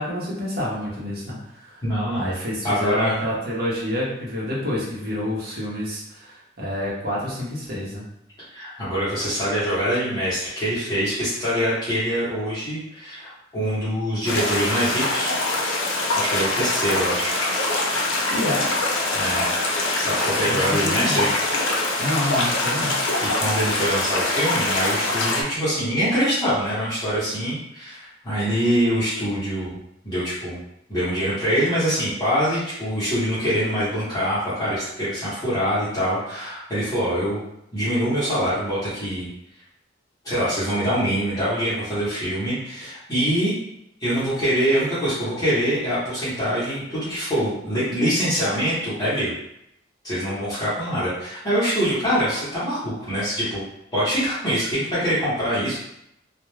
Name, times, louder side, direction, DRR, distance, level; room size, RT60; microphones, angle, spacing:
voice 1, 0.0-1.8 2.2-8.0 18.3-18.7 20.4-21.2 22.0-23.0, left 1 dB, 50° right, -5 dB, 0.8 m, -28 dB
voice 2, 1.8-2.3 2.6-3.2 8.5-15.3 16.1-17.4 19.1-19.5 19.9-21.3 23.2-29.8 30.0-30.6 30.9-37.4 37.7-39.3 40.2-43.5 44.0-49.3 50.0-53.6 53.9-55.8, equal, 20° left, -13 dB, 0.9 m, -24 dB
sound 1, 14.3-25.4, left 2 dB, 80° left, 0.5 m, -24 dB
2.3 x 2.1 x 3.2 m, 0.79 s
head